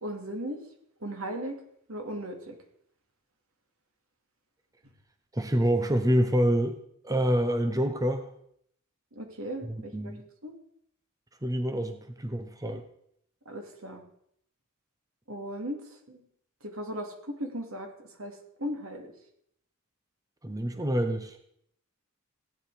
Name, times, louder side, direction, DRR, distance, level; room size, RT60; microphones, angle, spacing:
voice 1, 0.0-0.6 1.0-1.6 1.9-2.6 9.2-10.1 10.4-10.5 13.5-14.0 15.3-15.8 16.1-16.2 16.6-19.1, equal, 75° right, 3 dB, 2.7 m, -37 dB
voice 2, 5.3-6.8 7.0-8.3 9.7-10.2 11.4-12.8 20.4-21.4, equal, 15° right, 7 dB, 0.9 m, -27 dB
16.5 x 9.6 x 5.0 m, 0.71 s
head